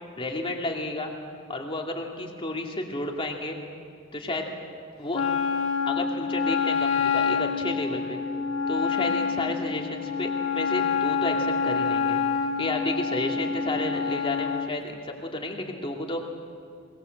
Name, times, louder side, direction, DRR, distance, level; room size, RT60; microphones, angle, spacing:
voice 1, 0.2-1.1 1.5-3.6 4.1-4.5 5.0-5.2 5.9-8.2 8.7-12.2 12.6-16.3, left 2 dB, 25° left, 1 dB, 2.5 m, -31 dB
Wind instrument woodwind instrument, 5.1-14.7, left 6 dB, 65° left, 1.5 m, -27 dB
22.5 x 20.5 x 7.9 m, 2.4 s
head